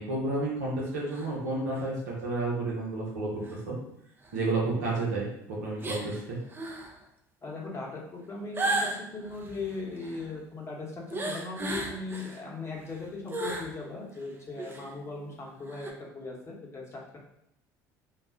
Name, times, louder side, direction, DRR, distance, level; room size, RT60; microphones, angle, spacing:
voice 1, 0.0-3.8 4.3-6.4, right 2 dB, 85° right, -4 dB, 0.8 m, -31 dB
sound 1, 1.1-1.3 1.7-1.8 3.4-3.6 4.2-4.3 5.8-6.2 6.5-6.9 8.6-10.3 11.1-12.4 12.8-13.7 14.1-14.2 14.6-14.9 15.7-15.9, right 2 dB, 25° right, 0.5 m, -34 dB
voice 2, 7.4-17.2, left 3 dB, 35° left, -2 dB, 1.0 m, -38 dB
2.4 x 2.0 x 3.6 m, 0.79 s
hypercardioid pair, 80°, 9 cm